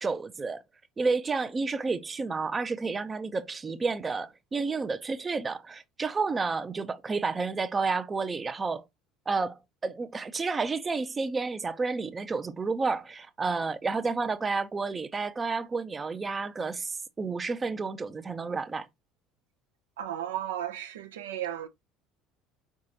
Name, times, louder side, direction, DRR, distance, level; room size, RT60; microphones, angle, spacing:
voice 1, 0.0-0.6 1.0-8.8 9.3-18.9, right 4 dB, 25° right, 0.5 m, -30 dB
voice 2, 20.0-21.7, right 11 dB, 75° right, 0.5 m, -34 dB
4.9 x 3.6 x 2.8 m
hypercardioid pair, 65°, 0 cm